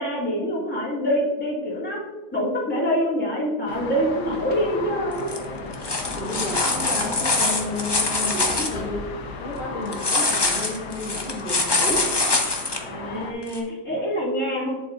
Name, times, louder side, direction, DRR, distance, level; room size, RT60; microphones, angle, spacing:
voice 1, 0.0-2.0 2.3-5.3 12.8-14.7, equal, 5° left, -6 dB, 2.2 m, -25 dB
sound 1, 3.7-13.3, left 3 dB, 85° left, 1.6 m, -34 dB
sound 2, 5.2-5.4 5.7-8.7 9.9-12.8 13.5-13.6, left 3 dB, 25° left, 0.5 m, -24 dB
voice 2, 6.1-9.1 9.4-12.3, left 2 dB, 55° left, -3 dB, 2.1 m, -32 dB
8.5 x 7.5 x 2.6 m, 1.2 s
omnidirectional pair, 1.7 m